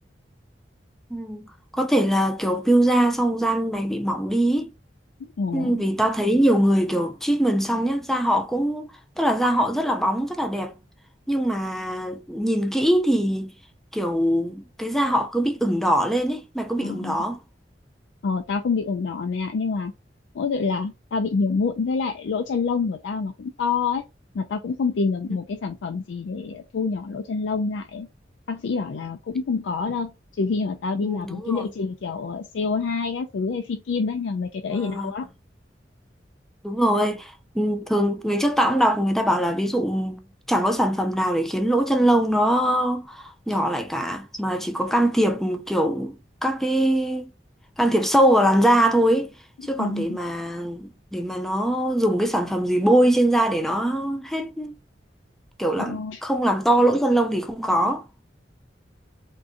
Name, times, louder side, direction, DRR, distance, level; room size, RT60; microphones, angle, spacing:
voice 1, 1.1-1.5 1.7-4.7 5.5-10.7 11.3-13.5 13.9-17.4 31.0-31.6 34.7-35.1 36.6-40.2 40.5-46.2 46.4-47.3 47.8-49.3 49.6-54.7 55.6-58.0, right 1 dB, ahead, 0.5 m, -22 dB
voice 2, 5.2-5.8 16.8-17.2 18.2-19.9 20.3-24.0 24.3-28.1 28.5-35.3 49.8-50.2 55.8-56.2, left 4 dB, 80° left, 0.4 m, -27 dB
3.6 x 2.5 x 2.6 m
head